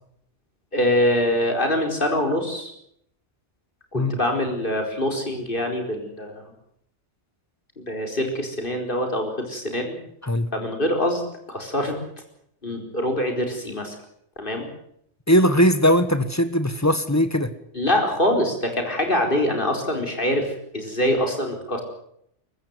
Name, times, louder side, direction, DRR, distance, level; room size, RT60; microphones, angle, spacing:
voice 1, 0.7-2.7 3.9-6.5 7.8-10.0 10.5-11.2 11.5-12.0 12.6-13.9 14.4-14.7 17.7-21.8, left 1 dB, 45° left, 4 dB, 4.8 m, -24 dB
voice 2, 15.3-17.5, equal, 15° left, 12 dB, 1.3 m, -19 dB
23.0 x 14.5 x 9.5 m, 0.71 s
omnidirectional pair, 1.2 m